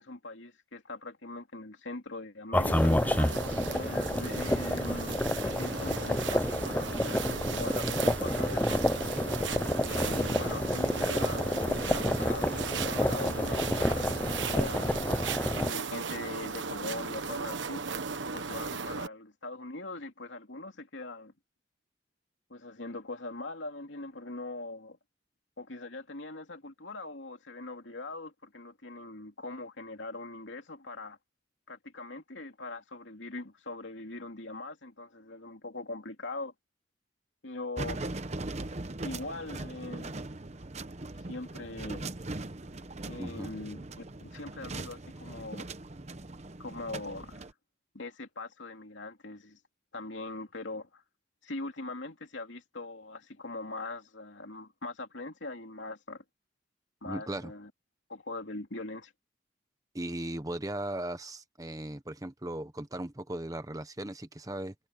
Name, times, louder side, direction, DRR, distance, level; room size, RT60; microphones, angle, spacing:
voice 1, 0.0-2.9 3.7-8.8 9.8-15.0 15.6-17.9 18.3-21.3 22.5-25.0 25.6-31.2 31.7-36.5 37.4-38.0 39.0-40.2 41.2-42.1 43.1-43.8 44.2-45.7 46.6-47.5 47.9-49.6 49.9-51.0 51.4-56.2 57.0-57.7 58.1-59.1, left 2 dB, 85° left, 2.7 m, -41 dB
sound 1, 2.5-15.7, left 1 dB, 10° left, 0.5 m, -29 dB
sound 2, 2.6-19.1, right 5 dB, 80° right, 1.2 m, -36 dB
sound 3, 37.8-47.5, right 2 dB, 35° right, 0.9 m, -40 dB
voice 2, 57.1-57.5 59.9-64.7, right 1 dB, 20° right, 1.1 m, -37 dB
head